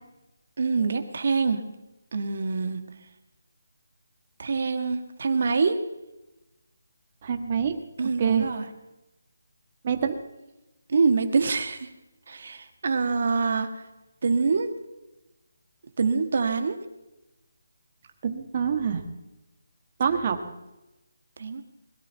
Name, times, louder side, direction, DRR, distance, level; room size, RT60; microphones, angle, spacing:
voice 1, 0.6-1.6 2.1-2.8 4.4-5.8 8.0-8.7 10.9-11.9 12.3-13.7 14.2-14.7 16.0-16.8 21.4-21.6, right 4 dB, 40° right, 7 dB, 1.6 m, -25 dB
voice 2, 7.2-7.7 8.2-8.5 9.8-10.2 18.2-19.0 20.0-20.4, right 7 dB, 25° right, 6 dB, 1.4 m, -25 dB
21.5 x 12.5 x 4.5 m, 0.98 s
hypercardioid pair, 175°, 0 cm